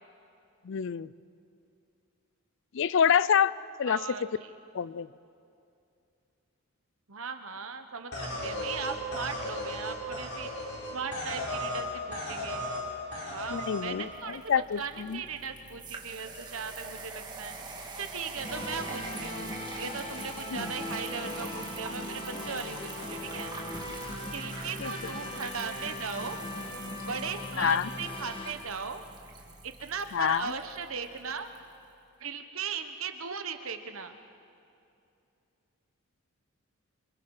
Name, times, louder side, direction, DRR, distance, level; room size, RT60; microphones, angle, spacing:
voice 1, 0.6-1.1 2.7-3.5 3.8-4.3 4.7-5.1 13.5-15.2 20.5-20.7 24.8-24.9 27.6-27.9 30.1-30.5, left 7 dB, 55° left, 19 dB, 0.4 m, -27 dB
voice 2, 3.9-4.5 7.1-10.5 10.9-12.6 13.3-14.4 14.8-17.6 18.0-19.5 19.8-23.5 24.3-26.4 27.0-29.0 29.6-31.5 32.2-34.2, right 5 dB, 65° right, 7 dB, 1.3 m, -38 dB
sound 1, 8.1-11.9 12.1-12.8 13.1-13.8, left 1 dB, 75° left, 5.2 m, -35 dB
sound 2, 13.6-31.6, right 3 dB, 20° right, 1.9 m, -45 dB
sound 3, 18.4-28.5, left 1 dB, 20° left, 1.7 m, -39 dB
28.0 x 25.5 x 4.9 m, 2.6 s
head